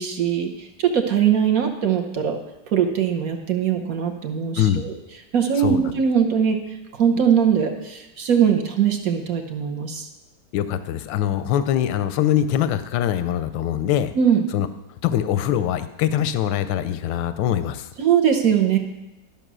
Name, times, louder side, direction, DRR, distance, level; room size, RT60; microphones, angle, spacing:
voice 1, 0.0-2.4 2.7-4.9 5.3-6.6 6.9-10.1 14.1-14.4 18.0-18.8, right 8 dB, 55° right, 4 dB, 1.2 m, -21 dB
voice 2, 10.5-14.1 14.5-14.7 15.0-17.9, left 10 dB, 90° left, 12 dB, 1.3 m, -23 dB
12.5 x 5.8 x 6.1 m, 0.97 s
omnidirectional pair, 2.0 m